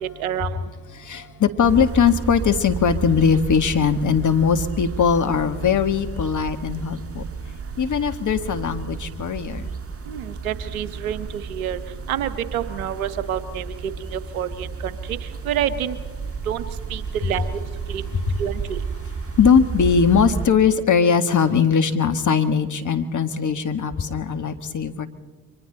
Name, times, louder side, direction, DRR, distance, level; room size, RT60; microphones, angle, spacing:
voice 1, 0.0-0.6 10.1-11.8 12.1-15.2 15.4-16.0 16.5-16.6 16.9-17.6 17.9-18.0 18.4-18.8, right 10 dB, 85° right, 14 dB, 1.0 m, -28 dB
voice 2, 1.0-7.2 7.8-9.6 19.4-25.1, left 6 dB, 45° left, 8 dB, 1.8 m, -20 dB
sound 1, 1.6-20.5, right 5 dB, 35° right, 1.9 m, -32 dB
30.0 x 24.0 x 4.0 m, 1.3 s
hypercardioid pair, 45°, 41 cm